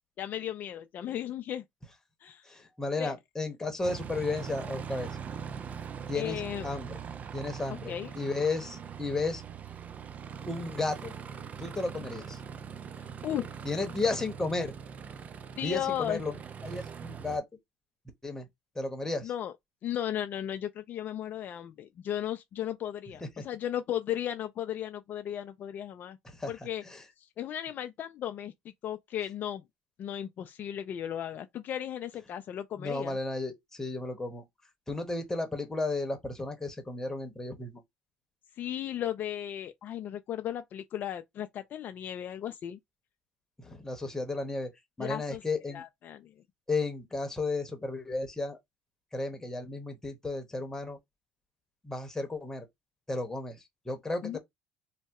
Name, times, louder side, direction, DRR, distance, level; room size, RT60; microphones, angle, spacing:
voice 1, 0.2-1.6 2.2-2.5 3.0-3.1 6.1-6.7 7.9-8.1 13.0-13.5 15.5-16.2 19.2-19.5 19.8-26.2 26.5-26.8 27.2-29.6 30.0-33.2 38.6-42.8 45.0-45.4 45.7-46.3 54.2-54.4, left 11 dB, 55° left, 0.4 m, -35 dB
voice 2, 2.4-5.1 6.1-7.0 7.3-9.4 10.5-11.1 11.6-12.4 13.6-14.7 15.6-16.4 16.6-17.4 18.2-18.5 18.7-19.3 23.2-23.5 26.2-26.5 26.8-27.0 32.8-34.4 34.9-37.8 43.6-44.7 45.0-45.8 46.7-48.6 49.1-51.0 51.8-52.7 53.1-54.4, left 3 dB, 10° left, 1.0 m, -33 dB
Aircraft, 3.8-17.4, right 7 dB, 40° right, 0.4 m, -42 dB
2.7 x 2.2 x 3.5 m
supercardioid pair, 95°, 4 cm